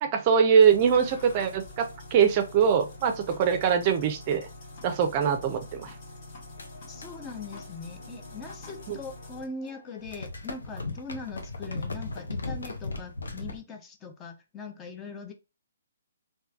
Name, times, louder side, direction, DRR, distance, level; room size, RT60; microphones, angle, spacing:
voice 1, 0.0-4.5 4.8-5.9 8.9-9.0, right 7 dB, 35° right, 7 dB, 0.4 m, -23 dB
floppy disk, 0.6-9.5, left 2 dB, 40° left, 1.0 m, -45 dB
sound 1, 6.5-9.2 9.5-13.6, left 2 dB, 80° left, 0.7 m, -38 dB
voice 2, 6.9-15.3, left 4 dB, 20° left, 4 dB, 0.5 m, -41 dB
3.1 x 2.2 x 2.4 m, 0.27 s
figure-of-eight pair, 140°, 0 cm